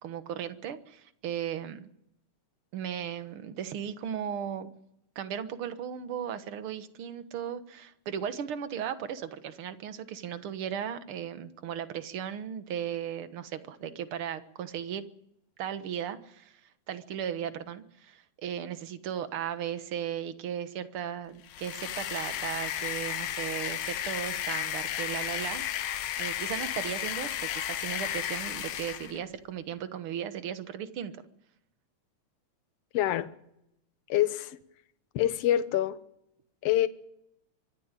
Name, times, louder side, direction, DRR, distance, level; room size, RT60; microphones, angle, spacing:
voice 1, 0.0-1.9 2.7-4.7 5.1-15.0 15.6-16.6 16.9-25.6 26.2-31.2, right 9 dB, 55° right, 11 dB, 1.8 m, -36 dB
sound 1, 21.4-29.2, left 11 dB, 80° left, 2.5 m, -33 dB
voice 2, 32.9-33.3 34.1-34.6 35.2-36.0 36.6-36.9, left 12 dB, 60° left, 12 dB, 1.9 m, -25 dB
24.5 x 14.0 x 9.1 m, 0.81 s
omnidirectional pair, 3.5 m